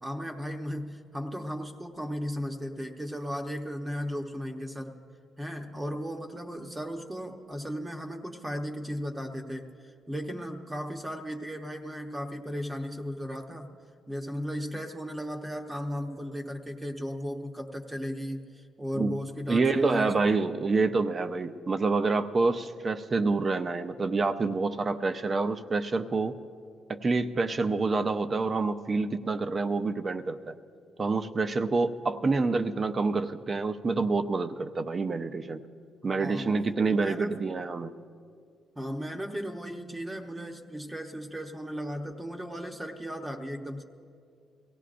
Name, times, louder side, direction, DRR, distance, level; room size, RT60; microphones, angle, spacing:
voice 1, 0.0-5.0 5.4-9.7 10.1-13.7 14.1-20.1 36.2-36.6 36.9-37.5 38.8-43.8, equal, 15° right, 3 dB, 0.9 m, -36 dB
voice 2, 19.5-26.3 26.9-30.6 31.0-35.6 36.0-37.9, right 3 dB, 35° right, 9 dB, 0.6 m, -27 dB
22.5 x 17.0 x 2.5 m, 2.3 s
cardioid pair, 90°, 0 cm